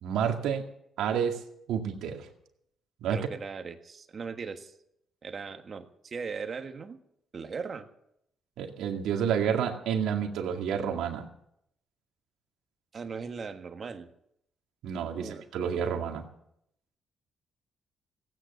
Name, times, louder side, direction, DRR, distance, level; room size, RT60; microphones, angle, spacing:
voice 1, 0.0-0.6 1.0-1.4 1.7-2.3 3.0-3.2 8.6-11.3 14.8-16.2, right 8 dB, 85° right, 3 dB, 2.1 m, -29 dB
voice 2, 3.1-4.7 5.2-7.0 7.3-7.9 12.9-14.1 15.1-15.4, right 5 dB, 45° right, 7 dB, 1.6 m, -38 dB
16.5 x 9.3 x 8.1 m, 0.76 s
cardioid pair, 90°, 0 cm